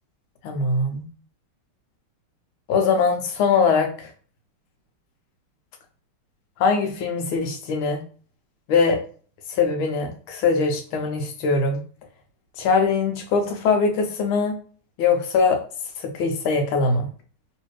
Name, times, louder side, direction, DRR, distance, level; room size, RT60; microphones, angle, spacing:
voice 1, 0.4-1.1 2.7-4.1 6.6-8.0 8.7-9.0 9.5-11.8 12.6-14.5 15.0-15.6 16.0-17.1, left 4 dB, 75° left, 4 dB, 1.5 m, -22 dB
3.2 x 3.2 x 3.1 m, 0.42 s
omnidirectional pair, 2.4 m